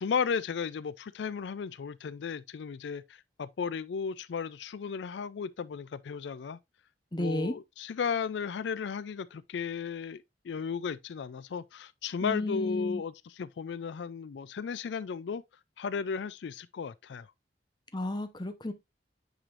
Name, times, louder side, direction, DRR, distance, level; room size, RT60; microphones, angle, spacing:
voice 1, 0.0-6.6 7.2-15.4 15.8-17.3, left 6 dB, 80° left, 0.4 m, -35 dB
voice 2, 7.1-7.5 12.2-13.0 17.9-18.7, left 1 dB, 25° left, 0.8 m, -32 dB
8.9 x 5.0 x 2.5 m
head